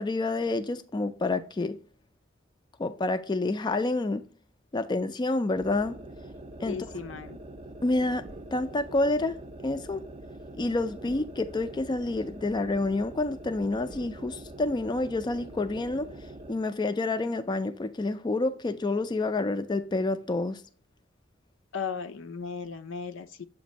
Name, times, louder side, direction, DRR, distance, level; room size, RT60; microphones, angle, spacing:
voice 1, 0.0-1.8 2.8-4.2 4.7-6.0 6.6-6.8 7.8-8.2 8.5-9.4 9.6-10.0 10.6-16.1 16.5-20.6, left 2 dB, 25° left, 0.4 m, -28 dB
sound 1, 5.5-16.6, right 1 dB, 30° right, 0.5 m, -44 dB
voice 2, 6.7-7.4 21.7-23.4, left 6 dB, 75° left, 0.5 m, -36 dB
7.3 x 2.6 x 5.1 m
head